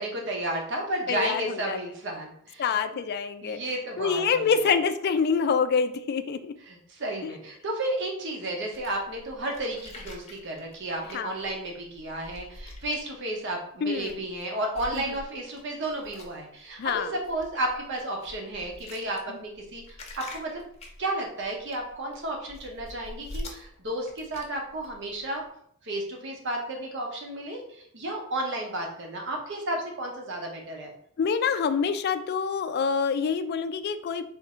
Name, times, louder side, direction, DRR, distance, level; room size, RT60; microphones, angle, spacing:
voice 1, 0.0-2.7 3.4-4.5 6.6-19.8 20.1-20.6 21.0-25.4 25.8-30.9, right 1 dB, 55° right, 1 dB, 0.9 m, -32 dB
voice 2, 1.1-1.8 2.6-3.6 4.0-6.5 7.2-7.3 11.1-11.3 13.8-14.2 14.9-15.0 16.8-17.1 19.3-19.4 31.2-34.2, left 6 dB, 45° left, 10 dB, 0.3 m, -26 dB
sound 1, 8.7-13.5 13.9-14.4 14.7-25.4, left 1 dB, 30° left, 0.7 m, -45 dB
3.5 x 2.6 x 4.2 m, 0.67 s
head